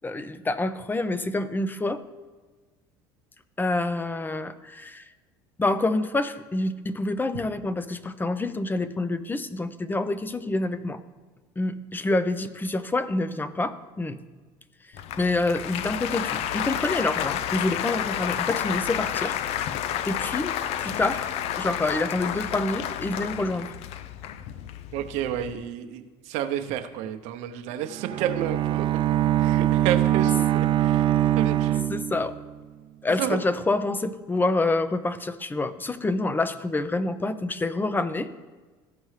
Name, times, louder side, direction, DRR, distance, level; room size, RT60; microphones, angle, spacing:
voice 1, 0.0-2.0 3.6-5.1 5.6-11.0 11.6-14.2 15.2-19.4 20.1-20.5 20.8-21.3 21.6-23.7 31.9-32.4 33.0-38.3, left 2 dB, 15° left, 13 dB, 0.6 m, -27 dB
Applause, 14.9-25.5, left 10 dB, 60° left, 0.4 m, -30 dB
voice 2, 24.9-28.9 29.4-31.1 31.3-31.8 33.2-33.4, right 10 dB, 70° right, 7 dB, 0.7 m, -30 dB
Bowed string instrument, 27.9-32.6, right 13 dB, 45° right, 0.4 m, -23 dB
14.5 x 5.3 x 3.2 m, 1.3 s
supercardioid pair, 90°, 12 cm